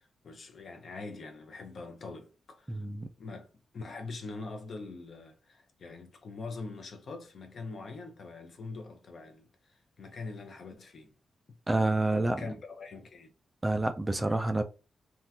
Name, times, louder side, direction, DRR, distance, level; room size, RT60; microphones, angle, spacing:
voice 1, 0.0-2.8 3.2-11.1 11.5-11.6 12.1-13.3, left 3 dB, 50° left, 0.6 m, -43 dB
voice 2, 2.7-3.1 11.7-12.5 13.6-14.6, right 2 dB, 15° right, 0.3 m, -28 dB
3.6 x 2.3 x 2.7 m
wide cardioid pair, 140°, 0 cm